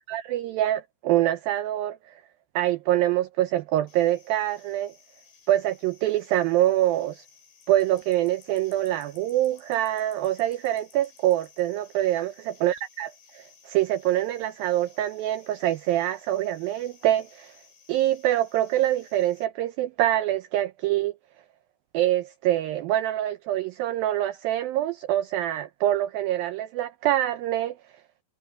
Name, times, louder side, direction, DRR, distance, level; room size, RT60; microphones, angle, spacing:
voice 1, 0.0-2.0 2.6-4.9 5.5-7.2 7.7-12.3 12.6-17.5 17.9-21.1 21.9-27.7, right 13 dB, 80° right, 2.2 m, -25 dB
sound 1, 3.9-19.5, left 6 dB, 75° left, 7.4 m, -57 dB
omnidirectional pair, 4.9 m